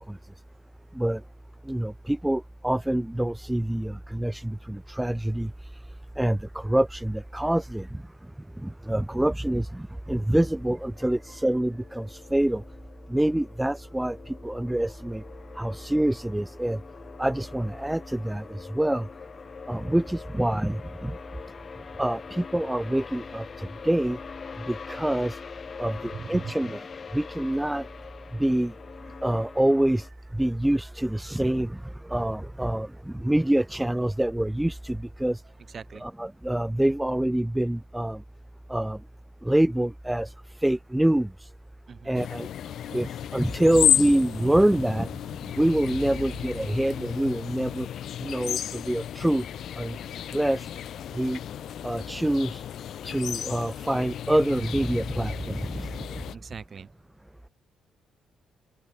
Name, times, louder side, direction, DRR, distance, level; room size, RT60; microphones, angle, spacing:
voice 1, 1.7-5.5 6.2-7.9 8.6-12.6 13.1-15.2 15.6-16.8 17.2-19.1 19.7-21.1 22.0-24.2 24.7-25.4 25.8-26.9 27.1-27.9 28.4-28.7 29.2-30.1 30.3-31.8 32.1-35.4 36.0-38.2 38.7-39.0 39.4-40.3 40.6-41.5 42.1-42.5 42.9-45.1 45.6-47.9 48.2-49.4 49.8-49.9 50.3-50.7 51.1-51.4 51.8-52.6 53.0-56.2, right 1 dB, 5° right, 0.3 m, -26 dB
sound 1, 10.4-30.1, left 5 dB, 40° left, 3.0 m, -44 dB
voice 2, 26.1-26.5 35.7-36.0 41.9-42.1 56.3-56.9, right 6 dB, 45° right, 1.0 m, -39 dB
sound 2, 42.1-56.4, left 10 dB, 70° left, 0.8 m, -32 dB
cardioid pair, 90°, 0 cm